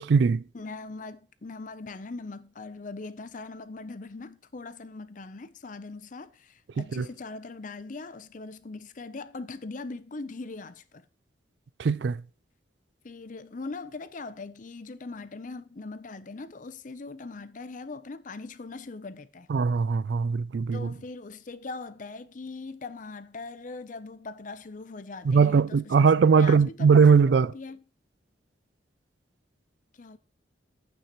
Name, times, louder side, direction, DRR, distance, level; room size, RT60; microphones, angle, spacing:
voice 1, 0.0-0.4 6.8-7.1 11.8-12.2 19.5-20.9 25.3-27.5, right 5 dB, 65° right, 0.4 m, -20 dB
voice 2, 0.5-11.0 13.0-19.5 20.7-27.8 29.9-30.2, left 3 dB, 45° left, 0.6 m, -41 dB
11.5 x 8.9 x 3.0 m
head